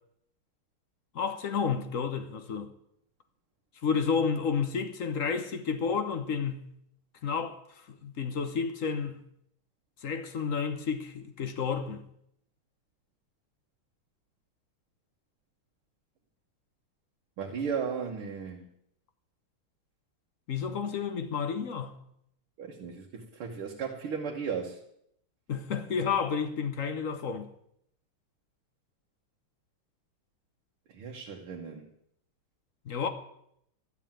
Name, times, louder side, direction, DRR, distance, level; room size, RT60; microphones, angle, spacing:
voice 1, 1.1-2.7 3.8-6.7 7.2-9.2 10.0-12.0 20.5-22.0 25.5-27.5 32.8-33.1, left 6 dB, 45° left, 1.2 m, -31 dB
voice 2, 17.4-18.7 22.6-24.8 30.9-31.9, right 6 dB, 80° right, 2.1 m, -35 dB
12.5 x 7.4 x 8.9 m
omnidirectional pair, 2.3 m